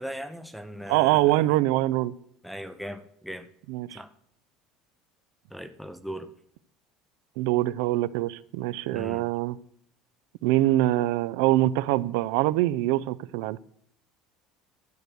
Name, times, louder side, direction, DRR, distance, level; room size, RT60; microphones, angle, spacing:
voice 1, 0.0-1.5 2.4-3.5 3.9-4.1 5.5-6.3 8.9-9.3, equal, ahead, 12 dB, 0.6 m, -38 dB
voice 2, 0.9-2.1 3.7-4.0 7.4-9.6 10.4-13.6, right 16 dB, 75° right, 17 dB, 0.5 m, -24 dB
12.0 x 6.3 x 6.7 m, 0.68 s
cardioid pair, 165°, 0 cm